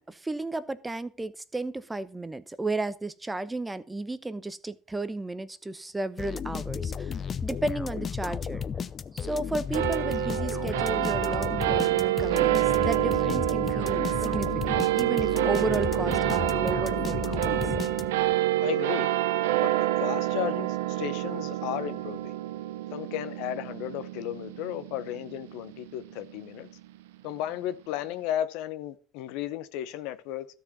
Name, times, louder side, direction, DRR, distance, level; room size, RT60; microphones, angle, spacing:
voice 1, 0.0-8.6 9.1-17.7, right 2 dB, 15° right, 0.8 m, -33 dB
sound 1, 6.2-18.4, left 7 dB, 40° left, 0.7 m, -34 dB
sound 2, 9.7-26.4, right 14 dB, 85° right, 0.6 m, -27 dB
voice 2, 18.6-19.1 19.6-19.7 20.0-22.4 22.9-26.7 27.2-30.5, left 12 dB, 70° left, 0.9 m, -34 dB
13.0 x 4.7 x 6.9 m
hypercardioid pair, 80°, 0 cm